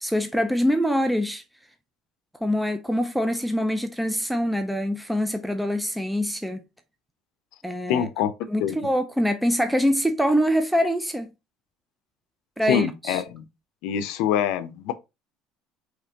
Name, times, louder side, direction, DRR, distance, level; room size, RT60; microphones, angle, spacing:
voice 1, 0.0-1.4 2.4-6.6 7.6-8.1 8.5-11.3 12.6-13.2, equal, ahead, 0.4 m, -24 dB
voice 2, 7.9-8.3 8.6-8.9 12.7-13.4 13.8-14.9, left 9 dB, 70° left, 0.6 m, -25 dB
5.1 x 3.2 x 2.9 m
cardioid pair, 170°, 0 cm